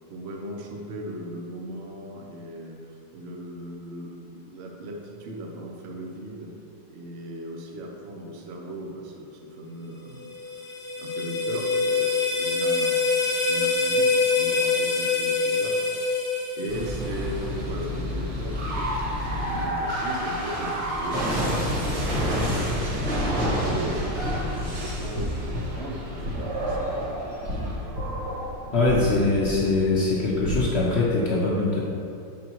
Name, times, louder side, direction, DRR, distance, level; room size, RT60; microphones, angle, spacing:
voice 1, 0.1-6.5 6.9-10.6 11.0-13.1 13.4-15.8 16.6-21.2 21.6-27.2, right 1 dB, 80° right, 1 dB, 0.5 m, -38 dB
sound 1, 10.2-17.3, left 4 dB, 15° left, 0.4 m, -25 dB
sound 2, 16.7-30.9, equal, 50° right, 2.1 m, -29 dB
voice 2, 28.7-31.8, left 2 dB, 70° left, -5 dB, 0.6 m, -22 dB
6.9 x 5.2 x 4.6 m, 2.5 s
omnidirectional pair, 2.3 m